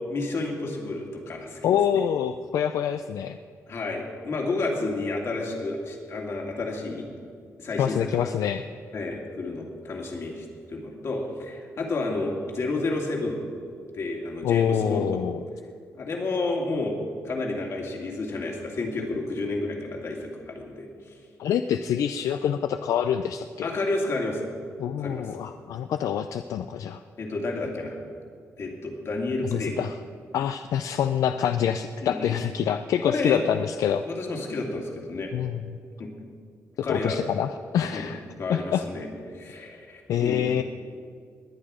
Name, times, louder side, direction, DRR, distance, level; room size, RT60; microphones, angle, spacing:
voice 1, 0.1-2.0 3.7-7.1 7.6-8.1 8.9-13.4 13.9-15.2 15.9-17.0 17.2-21.2 23.6-24.4 25.0-25.4 27.2-28.0 28.6-29.8 32.0-32.4 33.0-33.4 34.1-35.3 36.0-36.1 36.8-37.2 37.9-38.1 38.4-39.1 39.3-40.5, left 2 dB, 55° left, 0 dB, 2.5 m, -30 dB
voice 2, 1.6-3.4 7.8-8.6 14.4-15.4 21.4-23.7 24.8-27.0 29.5-29.9 30.3-34.0 35.3-35.6 36.9-38.2 38.5-38.8 40.1-40.6, left 9 dB, 80° left, 9 dB, 0.4 m, -26 dB
21.0 x 9.0 x 5.0 m, 2.3 s
cardioid pair, 125°, 6 cm